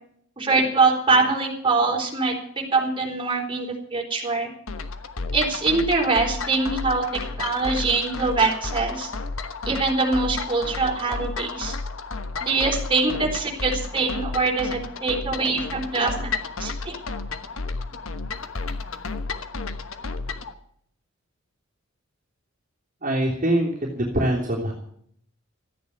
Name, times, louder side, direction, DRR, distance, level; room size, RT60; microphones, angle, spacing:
voice 1, 0.4-2.3 2.7-4.5 5.3-7.0 7.4-9.1 9.7-11.7 12.4-16.3 16.6-16.9, right 3 dB, 25° right, -1 dB, 4.0 m, -23 dB
sound 1, 4.7-20.5, left 3 dB, 75° left, 1.2 m, -32 dB
voice 2, 23.0-24.7, right 1 dB, 40° right, -3 dB, 3.1 m, -23 dB
14.0 x 9.4 x 9.6 m, 0.67 s
head